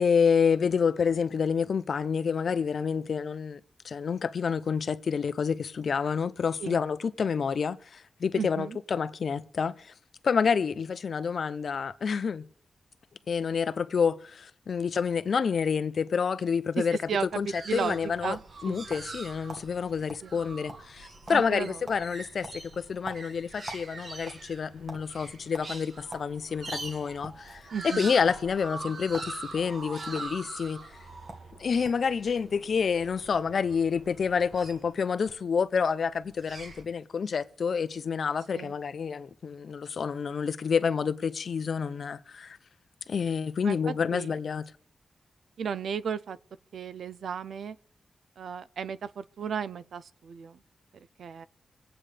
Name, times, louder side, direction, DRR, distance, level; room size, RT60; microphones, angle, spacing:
voice 1, 0.0-3.6 3.8-9.9 10.2-12.4 13.3-17.0 17.4-18.4 18.6-30.8 31.6-42.6 43.1-44.6, left 6 dB, 65° left, 0.6 m, -28 dB
voice 2, 8.4-8.8 16.9-18.4 18.7-18.8 20.2-20.4 21.3-21.8 27.7-28.1 38.5-38.7 43.6-44.4 45.6-46.4 46.7-47.8 48.4-50.6 51.2-51.5, right 7 dB, 90° right, 0.5 m, -34 dB
sound 1, 17.1-35.3 36.1-36.8, right 3 dB, 60° right, 1.9 m, -44 dB
sound 2, 18.3-19.2 19.5-19.6 20.1-20.3 20.5-21.0 21.3-21.6 21.9-22.0 22.4-23.9 24.2-25.0 25.5-25.7 26.1-26.3 26.7-27.4 28.2-28.4 29.1-29.3 29.6-30.2 31.0-31.1 31.3-31.5 31.8-32.1, right 2 dB, 40° right, 1.8 m, -43 dB
24.5 x 8.9 x 3.4 m
wide cardioid pair, 115°, 0 cm